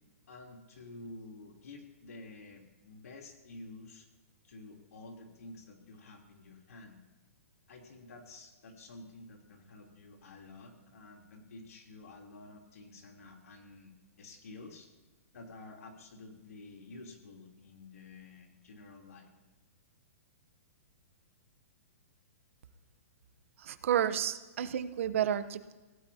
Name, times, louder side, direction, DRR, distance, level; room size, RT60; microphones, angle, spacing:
voice 1, 0.3-4.1 4.4-7.0 7.7-13.9 14.2-14.9 15.3-19.3, left 2 dB, 85° left, 1 dB, 3.4 m, -50 dB
voice 2, 23.6-25.7, right 10 dB, 60° right, 12 dB, 0.9 m, -31 dB
24.5 x 17.0 x 2.9 m, 1.2 s
hypercardioid pair, 155°, 8 cm